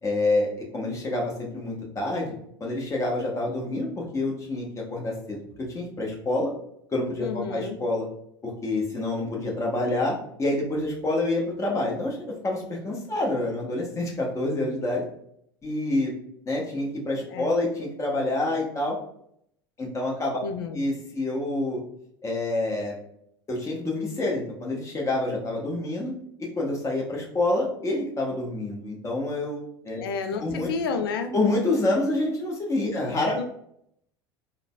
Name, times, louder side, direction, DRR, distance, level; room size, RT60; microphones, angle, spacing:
voice 1, 0.0-2.3 2.6-6.5 6.9-8.1 8.4-12.2 12.4-15.0 15.6-16.1 16.5-19.0 19.8-20.4 20.7-21.8 22.2-22.9 23.5-26.1 26.4-30.0 30.4-30.7 31.3-33.4, left 2 dB, 25° left, -2 dB, 1.0 m, -27 dB
voice 2, 7.2-7.8 17.3-17.6 20.4-20.9 30.0-31.3 33.4-33.5, left 5 dB, 75° left, 7 dB, 0.4 m, -30 dB
3.7 x 2.1 x 2.2 m, 0.70 s
hypercardioid pair, 75°, 12 cm